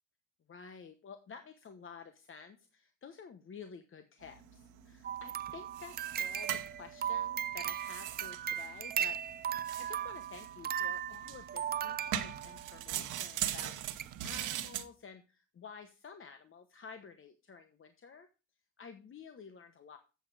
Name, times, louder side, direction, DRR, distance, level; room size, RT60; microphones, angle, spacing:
voice 1, 0.5-18.3 18.8-20.0, left 6 dB, 45° left, 8 dB, 1.1 m, -51 dB
sound 1, 4.2-14.8, right 12 dB, 90° right, 1.0 m, -42 dB
sound 2, 5.0-12.8 13.5-13.6 14.0-14.1 14.5-14.6, right 9 dB, 35° right, 0.4 m, -37 dB
8.1 x 7.6 x 4.8 m, 0.31 s
cardioid pair, 90°, 30 cm